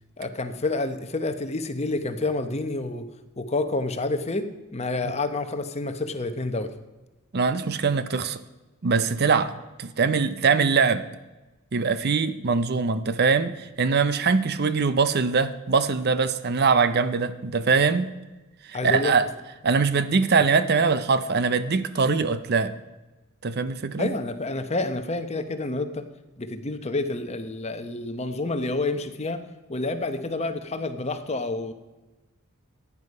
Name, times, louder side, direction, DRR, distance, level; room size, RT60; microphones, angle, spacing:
voice 1, 0.2-3.1 3.4-6.7 18.7-19.1 24.0-26.0 26.4-29.4 29.7-31.7, left 2 dB, 30° left, 9 dB, 1.0 m, -28 dB
voice 2, 7.3-8.4 8.8-11.0 11.7-18.1 18.7-19.3 19.6-22.7 23.4-24.1, right 5 dB, 50° right, 13 dB, 0.6 m, -22 dB
14.5 x 9.8 x 5.4 m, 1.1 s
head